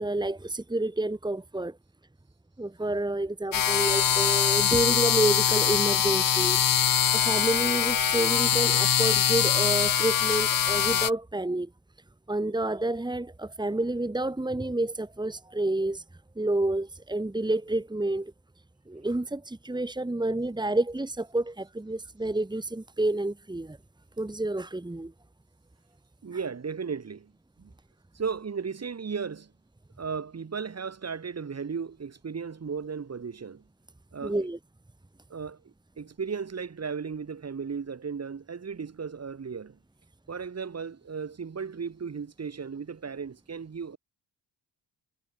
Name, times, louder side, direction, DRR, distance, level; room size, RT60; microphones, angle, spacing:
voice 1, 0.0-1.8 2.6-6.6 7.1-11.7 12.3-16.0 16.4-18.3 18.9-23.8 24.2-25.1 34.2-34.6, right 2 dB, 10° right, 2.9 m, -29 dB
sound 1, 3.5-11.1, left 9 dB, 60° left, 2.2 m, -23 dB
voice 2, 26.2-27.3 27.6-27.7 28.1-29.5 30.0-33.6 34.1-34.5 35.3-35.6 36.0-39.8 40.3-44.0, right 6 dB, 40° right, 6.2 m, -35 dB
cardioid pair, 125°, 39 cm